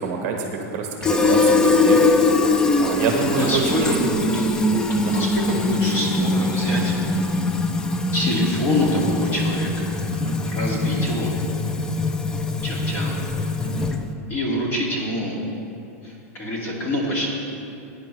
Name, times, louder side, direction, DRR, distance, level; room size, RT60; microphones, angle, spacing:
voice 1, 0.0-2.0 2.8-3.6 5.0-5.1 10.1-10.4 13.6-13.9, right 5 dB, 40° right, 1 dB, 1.3 m, -26 dB
Fill (with liquid), 1.0-14.1, left 3 dB, 10° left, 0.3 m, -22 dB
voice 2, 3.3-4.6 5.0-7.0 8.1-9.9 10.4-11.4 12.6-13.2 14.3-15.4 16.0-17.3, equal, 25° left, -3 dB, 2.2 m, -26 dB
17.5 x 9.6 x 3.2 m, 2.6 s
supercardioid pair, 160°, 8 cm